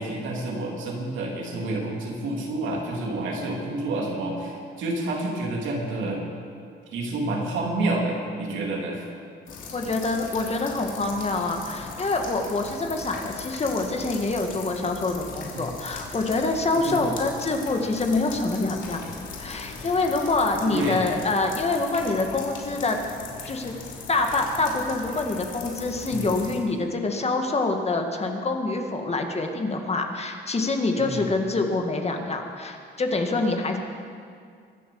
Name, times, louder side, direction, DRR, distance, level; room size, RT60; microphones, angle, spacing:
voice 1, 0.0-6.2 6.9-9.0 15.5-15.7 16.7-17.1 20.6-21.0 26.1-26.3 30.9-31.3, right 2 dB, 75° right, -1 dB, 3.4 m, -29 dB
sound 1, 9.5-26.6, left 4 dB, 75° left, 3.0 m, -39 dB
voice 2, 9.7-19.0 19.4-23.0 23.5-23.7 24.1-33.8, left 3 dB, 30° left, 3 dB, 1.9 m, -26 dB
23.5 x 7.9 x 7.0 m, 2.3 s
cardioid pair, 90°, 20 cm